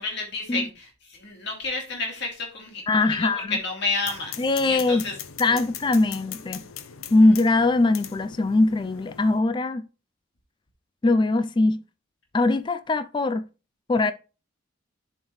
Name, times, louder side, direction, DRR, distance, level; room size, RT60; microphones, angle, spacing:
voice 1, 0.0-5.2 5.5-5.6, left 3 dB, 55° left, 2.6 m, -31 dB
voice 2, 2.9-3.6 4.4-5.0 5.4-6.7 7.1-9.9 11.0-11.8 12.3-13.5 13.9-14.1, left 2 dB, 20° left, 0.3 m, -21 dB
sound 1, 4.0-9.4, left 9 dB, 80° left, 0.7 m, -40 dB
10.5 x 4.5 x 3.1 m
head